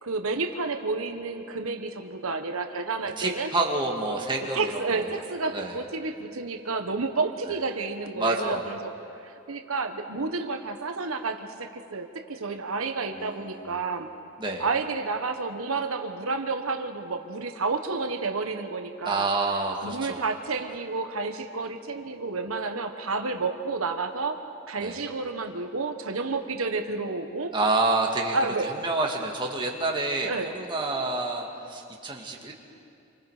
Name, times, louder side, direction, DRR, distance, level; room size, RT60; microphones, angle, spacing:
voice 1, 0.0-3.5 4.5-8.9 9.2-14.1 14.6-19.3 19.8-24.4 24.7-27.5 28.3-28.7 30.3-30.5, right 3 dB, 85° right, 6 dB, 1.2 m, -30 dB
voice 2, 3.2-5.2 5.5-5.8 8.2-8.7 13.1-13.8 14.4-14.7 19.1-20.3 24.8-25.0 27.5-32.5, right 2 dB, 25° right, 0 dB, 2.1 m, -28 dB
28.5 x 25.0 x 5.0 m, 2.6 s
head